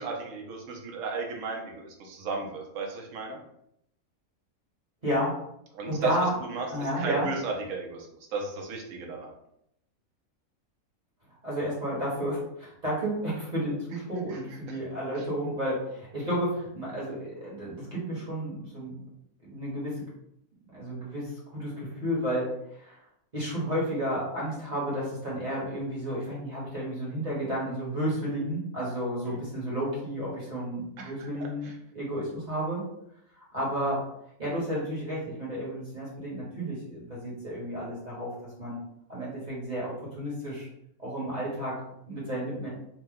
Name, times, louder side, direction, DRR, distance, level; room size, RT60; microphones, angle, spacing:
voice 1, 0.0-3.4 5.7-6.1 6.5-8.1 8.3-9.3 14.3-14.4 14.7-14.8 29.3-29.4 31.0-31.3 31.6-31.7, right 4 dB, 65° right, 1 dB, 1.0 m, -34 dB
voice 2, 5.0-5.3 5.9-6.4 6.7-7.3 11.4-19.0 19.4-20.0 20.7-23.0 23.3-32.8 33.3-34.0 34.4-38.8 39.1-40.7 41.0-42.7, equal, 35° right, -7 dB, 1.0 m, -32 dB
3.0 x 2.2 x 3.4 m, 0.75 s
omnidirectional pair, 1.5 m